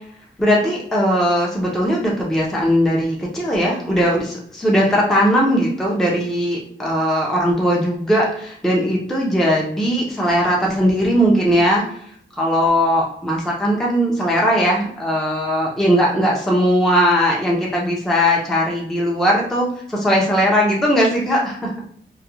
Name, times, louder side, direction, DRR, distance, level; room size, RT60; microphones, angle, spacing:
voice 1, 0.4-11.8 12.4-21.7, equal, ahead, -2 dB, 0.4 m, -19 dB
2.3 x 2.0 x 2.9 m, 0.64 s
wide cardioid pair, 135°, 20 cm